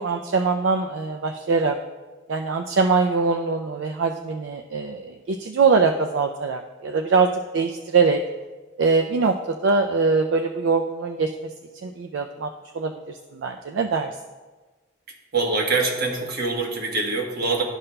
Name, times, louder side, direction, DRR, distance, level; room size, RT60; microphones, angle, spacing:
voice 1, 0.0-1.8 2.3-8.2 8.8-11.3 11.8-12.5 12.7-14.1, right 4 dB, 70° right, 4 dB, 0.4 m, -22 dB
voice 2, 15.3-17.6, right 3 dB, 50° right, 1 dB, 1.1 m, -24 dB
12.0 x 5.6 x 2.2 m, 1.3 s
head